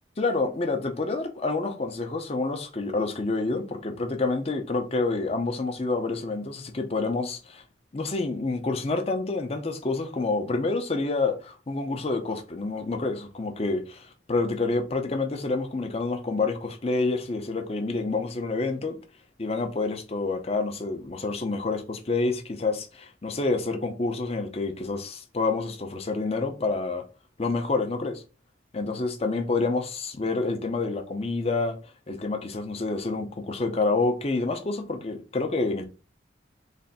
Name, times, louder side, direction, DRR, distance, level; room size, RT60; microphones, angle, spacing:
voice 1, 0.2-7.6 7.9-19.0 19.4-27.0 27.4-28.2 28.7-31.8 32.1-35.9, left 3 dB, 35° left, 0.6 m, -28 dB
3.3 x 2.5 x 4.0 m
head